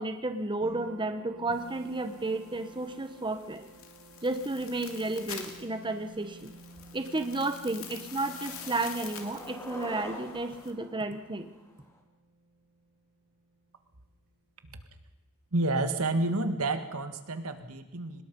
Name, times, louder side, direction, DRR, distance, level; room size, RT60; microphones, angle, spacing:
voice 1, 0.0-3.6 4.2-6.5 6.9-11.5, right 2 dB, 20° right, 8 dB, 1.1 m, -32 dB
sound 1, 0.6-13.9, right 2 dB, 40° right, 6.6 m, -53 dB
sound 2, 1.5-10.7, left 8 dB, 70° left, 2.7 m, -47 dB
Skateboard, 6.2-6.3 6.7-7.0 7.4-12.0, left 1 dB, 15° left, 3.2 m, -47 dB
voice 2, 15.5-18.2, right 2 dB, 85° right, 9 dB, 1.8 m, -29 dB
23.5 x 20.0 x 5.4 m, 1.0 s
head